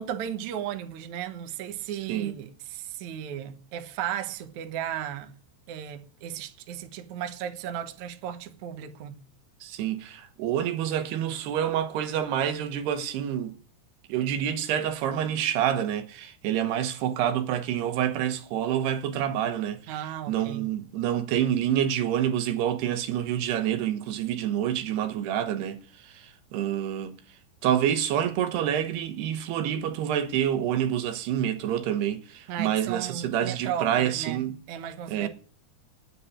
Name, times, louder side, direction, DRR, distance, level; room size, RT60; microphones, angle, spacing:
voice 1, 0.0-5.3 5.7-9.2 19.9-20.7 32.5-35.3, right 10 dB, 60° right, 2.2 m, -35 dB
voice 2, 9.6-13.6 14.1-27.1 27.6-34.6 35.1-35.3, right 10 dB, 85° right, 3.2 m, -27 dB
9.7 x 9.1 x 10.0 m
omnidirectional pair, 4.6 m